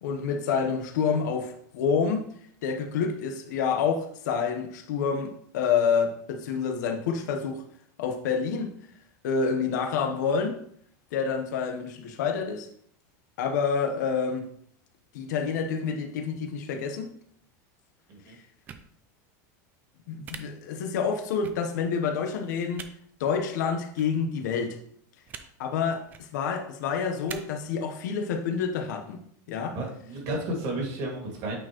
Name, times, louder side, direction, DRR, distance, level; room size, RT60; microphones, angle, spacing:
voice 1, 0.0-2.3 2.6-7.6 8.0-8.7 9.2-10.6 11.1-12.7 13.4-14.5 15.1-17.1 18.3-18.4 20.1-22.9 23.2-24.8 25.6-29.2 29.5-29.8, left 6 dB, 75° left, 6 dB, 1.0 m, -28 dB
sound 1, 18.7-18.8 20.2-20.4 21.4-21.5 22.7-22.9 23.9-24.1 25.3-25.4 26.0-26.2 27.3-27.4, right 7 dB, 20° right, 0.4 m, -41 dB
voice 2, 29.7-31.6, right 1 dB, 40° right, 0 dB, 2.1 m, -32 dB
8.7 x 4.4 x 3.0 m, 0.65 s
supercardioid pair, 170°, 10 cm